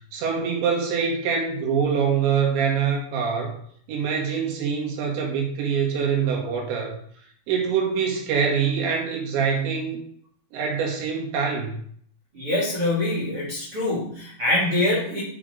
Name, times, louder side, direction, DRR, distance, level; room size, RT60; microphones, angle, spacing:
voice 1, 0.1-3.6 3.9-7.0 7.5-10.0 10.5-11.8, right 6 dB, 75° right, -1 dB, 4.3 m, -24 dB
voice 2, 12.3-15.2, left 1 dB, 35° right, -4 dB, 3.1 m, -24 dB
9.9 x 6.0 x 5.2 m, 0.62 s
omnidirectional pair, 5.3 m